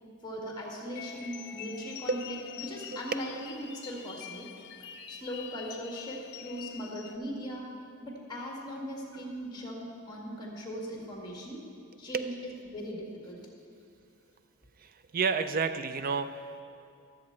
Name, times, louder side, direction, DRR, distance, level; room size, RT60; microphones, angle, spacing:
voice 1, 0.2-4.5 4.8-7.7 8.0-11.6 12.0-13.4, equal, 20° left, -1 dB, 1.5 m, -39 dB
sound 1, 0.9-7.2, left 8 dB, 50° left, 0.5 m, -45 dB
voice 2, 14.8-16.6, right 5 dB, 40° right, 10 dB, 0.4 m, -31 dB
13.0 x 7.3 x 4.3 m, 2.4 s
head